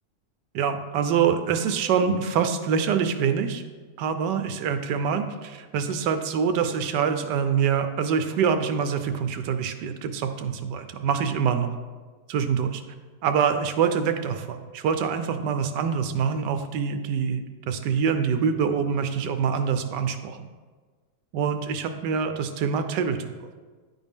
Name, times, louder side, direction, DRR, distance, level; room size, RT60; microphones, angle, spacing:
voice 1, 0.5-3.6 4.0-11.7 12.3-12.8 13.2-20.5 21.3-23.2, right 7 dB, 80° right, 8 dB, 1.2 m, -25 dB
10.0 x 4.1 x 3.5 m, 1.4 s
omnidirectional pair, 1.9 m